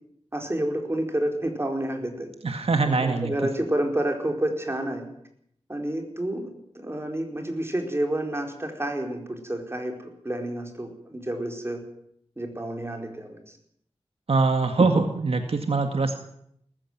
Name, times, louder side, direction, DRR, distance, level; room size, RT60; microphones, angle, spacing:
voice 1, 0.3-2.3 2.8-5.1 5.7-11.8 12.4-13.6, right 1 dB, 25° right, 3 dB, 4.6 m, -29 dB
voice 2, 2.4-3.3 14.3-16.1, right 3 dB, 65° right, 6 dB, 1.9 m, -23 dB
19.5 x 14.5 x 9.3 m, 0.72 s
wide cardioid pair, 85°, 11 cm